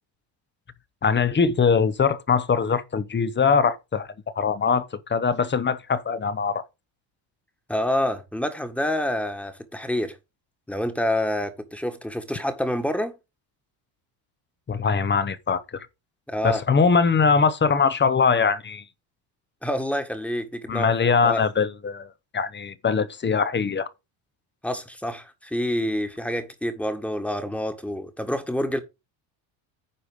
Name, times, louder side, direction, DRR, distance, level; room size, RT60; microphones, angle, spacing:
voice 1, 1.0-4.1 4.3-6.6 14.7-15.9 16.4-18.9 20.7-23.9, left 5 dB, 25° left, 0.9 m, -22 dB
voice 2, 7.7-10.2 10.7-13.2 16.3-16.6 19.6-20.9 21.2-21.4 24.6-28.8, left 1 dB, 5° left, 1.6 m, -27 dB
9.7 x 4.9 x 5.2 m
cardioid pair, 115°, 46 cm